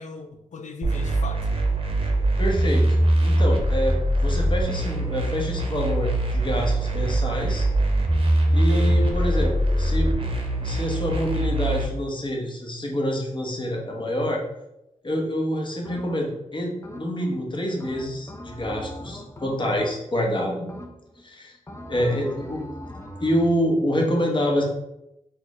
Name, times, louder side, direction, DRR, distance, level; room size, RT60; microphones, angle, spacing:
voice 1, 0.0-1.5 8.8-9.2 21.9-22.3, left 4 dB, 65° left, 7 dB, 0.5 m, -38 dB
sound 1, 0.8-11.8, right 1 dB, 45° right, 0.7 m, -22 dB
voice 2, 2.4-2.9 3.2-7.7 8.5-10.1 10.6-14.4 15.0-20.7 21.2-21.6 21.9-22.6 23.2-24.6, equal, 35° left, -1 dB, 1.1 m, -27 dB
sound 2, 8.7-10.9, left 1 dB, ahead, 1.1 m, -38 dB
sound 3, 15.8-16.4 16.8-17.4 17.8-20.3 20.7-21.2 21.7-23.6, left 1 dB, 20° left, 0.7 m, -40 dB
4.1 x 2.4 x 3.1 m, 0.87 s
cardioid pair, 40°, 13 cm